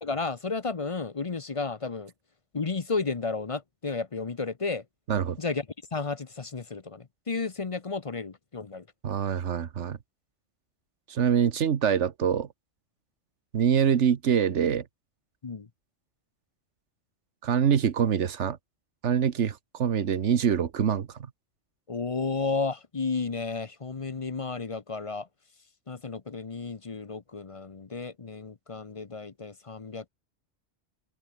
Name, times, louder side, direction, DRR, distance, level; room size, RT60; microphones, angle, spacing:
voice 1, 0.0-2.1 2.5-4.8 5.4-5.7 5.9-8.9 15.4-15.7 21.9-25.3 25.9-30.1, left 4 dB, 35° left, 0.8 m, -32 dB
voice 2, 9.0-10.0 11.1-12.5 13.5-14.8 17.4-18.6 19.0-21.1, right 8 dB, 85° right, 1.4 m, -25 dB
open air
omnidirectional pair, 1.2 m